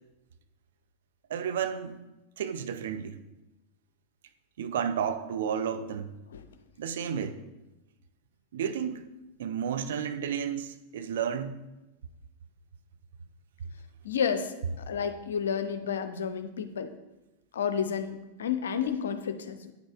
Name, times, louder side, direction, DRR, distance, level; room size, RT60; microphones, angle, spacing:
voice 1, 1.3-2.0 2.4-3.2 4.6-6.2 6.8-7.4 8.5-9.1 9.4-11.6, right 8 dB, 60° right, 0.4 m, -32 dB
voice 2, 14.0-16.9 17.5-19.7, left 7 dB, 65° left, 0.5 m, -31 dB
9.1 x 6.3 x 2.4 m
figure-of-eight pair, 90°, 0 cm